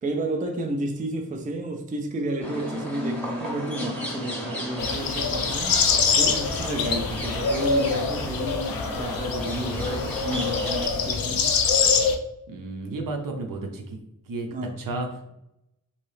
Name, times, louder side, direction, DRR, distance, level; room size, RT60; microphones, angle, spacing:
voice 1, 0.0-5.8 6.2-11.5 14.5-14.7, right 2 dB, 25° right, 0.3 m, -31 dB
sound 1, 2.4-10.9, left 1 dB, 5° left, 0.8 m, -33 dB
sound 2, 4.8-12.2, left 5 dB, 80° left, 0.5 m, -25 dB
voice 2, 12.5-14.0 14.3-14.5 14.8-15.3, right 2 dB, 70° right, 0.7 m, -32 dB
2.9 x 2.7 x 3.2 m
wide cardioid pair, 125°, 35 cm